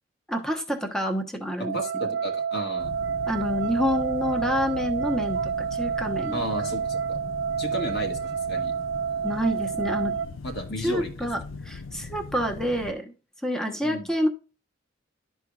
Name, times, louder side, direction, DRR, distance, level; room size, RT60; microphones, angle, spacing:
voice 1, 0.3-2.1 3.3-6.4 9.2-10.1 10.8-13.1 13.4-14.3, equal, 5° left, 4 dB, 1.0 m, -28 dB
sound 1, 1.6-10.3, right 7 dB, 70° right, 0.7 m, -29 dB
voice 2, 1.7-3.0 6.3-7.2 7.6-8.7 10.4-11.3 13.8-14.1, equal, 55° left, 2 dB, 2.0 m, -33 dB
sound 2, 2.8-12.9, left 4 dB, 90° left, 0.6 m, -40 dB
12.0 x 4.6 x 2.4 m, 0.32 s
head